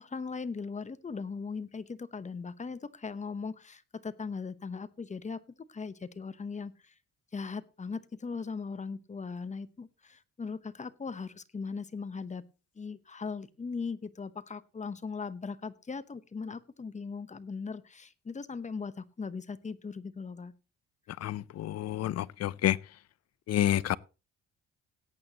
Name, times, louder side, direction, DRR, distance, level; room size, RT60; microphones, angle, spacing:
voice 1, 0.0-5.4 5.7-6.9 7.3-12.4 12.8-20.5, left 5 dB, 25° left, 0.9 m, -39 dB
voice 2, 21.2-22.8 23.5-24.0, left 12 dB, 55° left, 0.5 m, -29 dB
17.5 x 8.8 x 2.9 m
cardioid pair, 90°, 30 cm